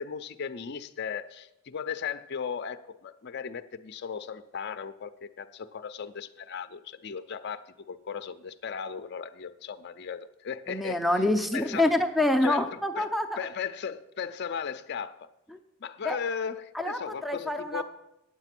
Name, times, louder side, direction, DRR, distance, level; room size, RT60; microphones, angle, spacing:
voice 1, 0.0-11.0 11.5-11.9 12.4-12.7 13.0-13.1 13.4-15.3 15.8-17.8, left 6 dB, 50° left, 0.5 m, -36 dB
voice 2, 10.7-13.4 15.5-15.6 16.0-16.2 16.7-17.8, left 1 dB, ahead, 0.5 m, -26 dB
9.7 x 7.4 x 5.9 m
head